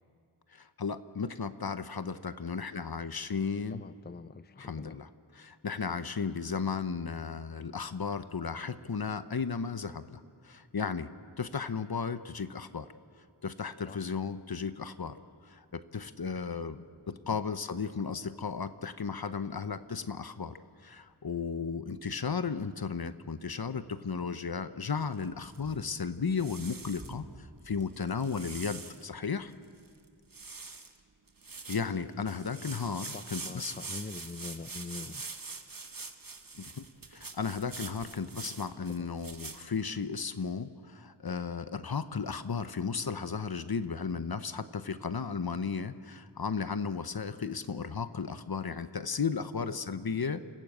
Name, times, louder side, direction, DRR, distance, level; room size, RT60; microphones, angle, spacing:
voice 1, 0.5-3.8 4.6-5.1 5.4-11.1 11.4-12.9 13.4-15.2 15.4-20.6 20.8-29.5 31.7-33.7 36.5-36.8 37.1-50.5, left 5 dB, 60° left, 12 dB, 0.9 m, -35 dB
voice 2, 3.7-5.0 13.8-14.1 33.1-35.2 38.9-39.1 49.4-49.8, left 4 dB, 25° left, 13 dB, 0.5 m, -44 dB
sound 1, 15.5-28.6, right 1 dB, 35° right, 3.7 m, -58 dB
sound 2, 25.1-25.9 26.4-27.1 27.8-29.0 29.5-29.6 29.8-30.0 30.3-31.0 31.3-39.7, right 4 dB, 55° right, 1.4 m, -44 dB
27.5 x 15.0 x 8.0 m, 2.2 s
wide cardioid pair, 50°, 41 cm